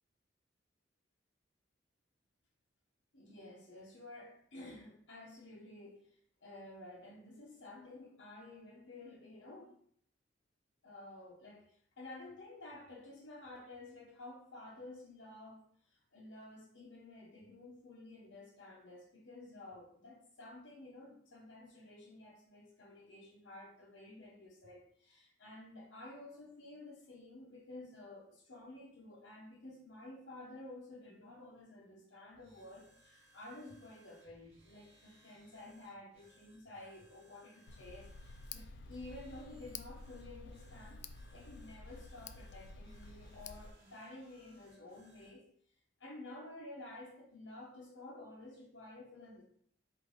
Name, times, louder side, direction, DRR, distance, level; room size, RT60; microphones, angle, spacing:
voice 1, 3.1-9.8 10.8-41.0 41.3-45.5 46.0-49.4, left 2 dB, 80° left, -4 dB, 1.0 m, -52 dB
sound 1, 32.3-45.4, right 1 dB, 35° right, 1.4 m, -67 dB
Tick, 37.7-43.7, left 4 dB, 65° left, 0.3 m, -51 dB
5.1 x 2.8 x 3.8 m, 0.62 s
head